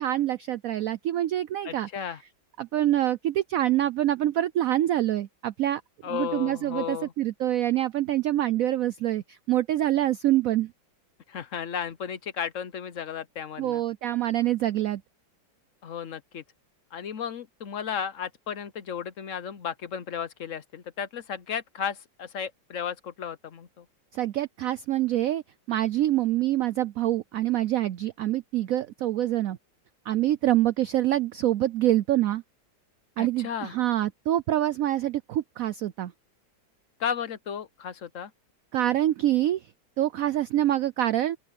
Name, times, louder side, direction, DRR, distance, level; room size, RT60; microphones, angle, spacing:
voice 1, 0.0-1.9 2.6-5.8 6.1-10.7 13.6-15.0 24.1-29.6 30.1-32.4 33.2-36.1 38.7-39.7 40.0-41.4, right 13 dB, 90° right, 0.7 m, -25 dB
voice 2, 1.6-2.2 6.0-7.1 11.3-13.8 15.8-16.4 16.9-23.8 33.2-33.7 37.0-38.3, left 8 dB, 60° left, 0.9 m, -34 dB
open air
omnidirectional pair, 2.1 m